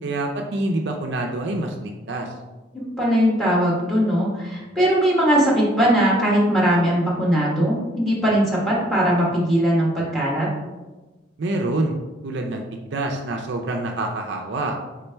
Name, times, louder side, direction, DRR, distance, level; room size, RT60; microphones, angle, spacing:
voice 1, 0.0-2.3 11.4-11.9 12.2-14.8, right 2 dB, 60° right, 2 dB, 0.4 m, -26 dB
voice 2, 3.0-10.5, equal, ahead, -5 dB, 1.2 m, -20 dB
4.2 x 3.7 x 3.3 m, 1.2 s
head